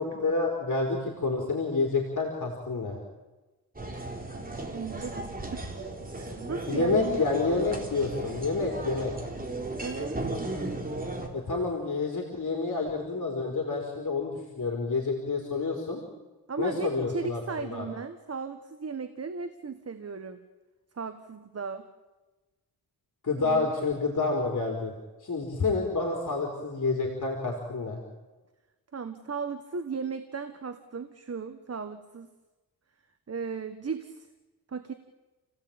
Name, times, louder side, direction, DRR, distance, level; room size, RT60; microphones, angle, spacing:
voice 1, 0.0-3.0 6.7-9.1 11.3-16.0 16.6-17.8 23.2-24.9 25.2-28.0, left 3 dB, 50° left, 1 dB, 4.4 m, -29 dB
sound 1, 3.7-11.3, right 2 dB, 25° right, 3.8 m, -36 dB
voice 2, 4.5-5.7 6.1-7.2 9.8-10.1 16.5-20.4 20.9-21.8 23.4-23.7 28.9-32.3 33.3-34.3 34.7-34.9, right 5 dB, 40° right, 8 dB, 1.6 m, -36 dB
29.5 x 17.0 x 9.0 m, 1.2 s
wide cardioid pair, 120°, 38 cm